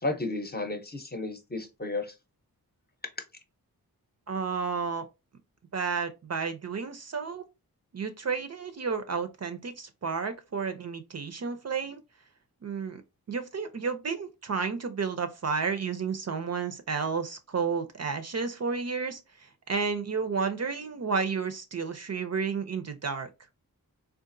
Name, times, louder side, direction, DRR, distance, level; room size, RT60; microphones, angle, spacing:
voice 1, 0.0-2.1, left 2 dB, 25° left, 0.7 m, -33 dB
voice 2, 4.3-5.1 5.7-7.5 7.9-12.0 12.6-13.0 13.3-19.2 19.7-23.3, right 5 dB, 45° right, 0.5 m, -31 dB
3.7 x 2.4 x 2.5 m
wide cardioid pair, 65°, 37 cm